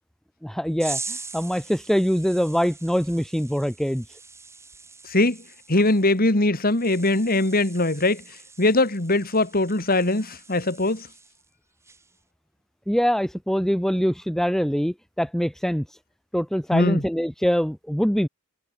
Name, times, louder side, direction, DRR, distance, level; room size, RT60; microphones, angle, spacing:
voice 1, 0.4-4.0 12.9-16.0 16.3-18.3, equal, ahead, 1.3 m, -24 dB
sound 1, 0.8-11.5 11.8-12.2, right 4 dB, 15° right, 6.9 m, -42 dB
voice 2, 5.0-5.4 5.7-8.2 8.6-11.1 16.7-17.0, left 2 dB, 45° left, 2.8 m, -21 dB
head